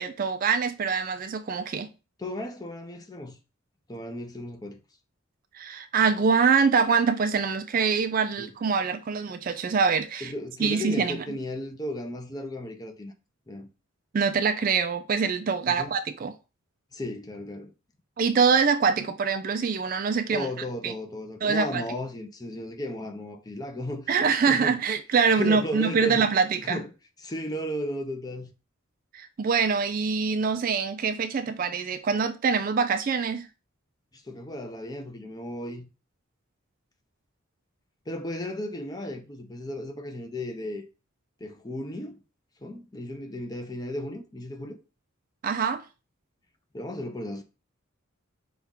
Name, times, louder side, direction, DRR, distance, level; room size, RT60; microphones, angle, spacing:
voice 1, 0.0-1.9 5.5-10.3 10.6-11.2 14.1-16.3 18.2-20.5 20.8-20.9 21.4-21.8 24.1-26.8 29.1-33.5 45.4-45.8, right 5 dB, 40° right, 0.3 m, -24 dB
voice 2, 2.2-3.4 3.9-4.8 8.4-8.5 10.2-13.1 13.5-13.7 15.7-15.9 16.9-17.7 20.3-24.1 24.5-24.8 25.3-26.3 26.6-26.9 27.2-28.5 34.1-35.9 38.1-40.8 41.4-42.2 42.6-44.8 46.7-47.4, left 1 dB, 20° left, 0.5 m, -35 dB
5.6 x 2.4 x 3.6 m
head